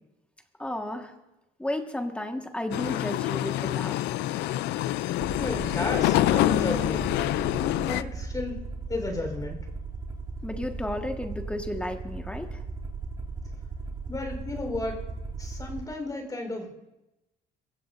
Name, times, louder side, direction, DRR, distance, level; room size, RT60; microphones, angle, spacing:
voice 1, 0.6-1.1 1.6-4.0 10.4-12.6, left 1 dB, 5° left, 4 dB, 1.7 m, -33 dB
sound 1, 2.7-8.0, left 15 dB, 85° left, 0.4 m, -26 dB
Aircraft, 5.2-15.8, right 3 dB, 30° right, 3.3 m, -37 dB
voice 2, 5.4-7.1 7.9-9.6 14.1-15.0 15.4-16.7, left 2 dB, 20° left, 2 dB, 4.3 m, -33 dB
24.0 x 16.0 x 2.7 m, 0.96 s
cardioid pair, 110°, 17 cm